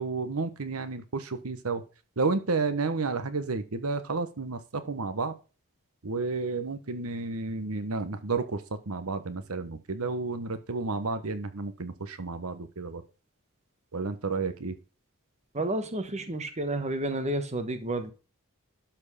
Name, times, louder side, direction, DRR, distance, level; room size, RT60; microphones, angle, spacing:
voice 1, 0.0-1.8 2.2-5.3 6.0-13.0 13.9-14.8, right 3 dB, 75° right, 10 dB, 1.0 m, -31 dB
voice 2, 15.5-18.1, right 1 dB, 30° right, 9 dB, 1.3 m, -30 dB
12.0 x 4.5 x 5.6 m, 0.33 s
head